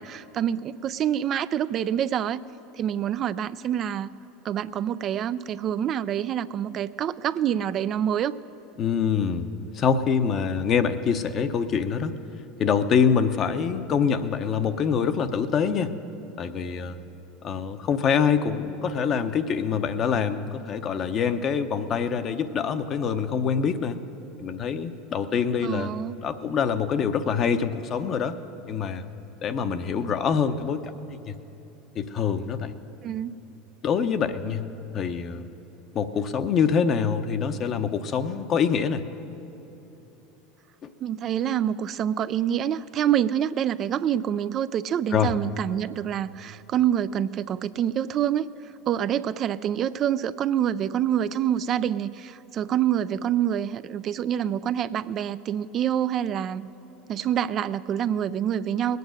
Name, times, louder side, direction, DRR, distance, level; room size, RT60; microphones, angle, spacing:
voice 1, 0.0-2.4 2.7-4.1 4.4-8.4 25.6-26.2 33.0-33.4 41.0-48.5 48.9-56.7 57.1-59.0, right 10 dB, 45° right, 14 dB, 0.3 m, -26 dB
voice 2, 8.8-12.1 12.6-15.9 16.4-17.0 17.4-24.0 24.4-25.9 26.2-28.4 28.7-29.0 29.4-31.3 31.9-32.7 33.8-34.7 34.9-35.5 35.9-39.0 40.8-40.9 45.1-45.3, left 6 dB, 45° left, 9 dB, 0.8 m, -25 dB
20.5 x 9.4 x 6.4 m, 2.9 s
hypercardioid pair, 90°, 0 cm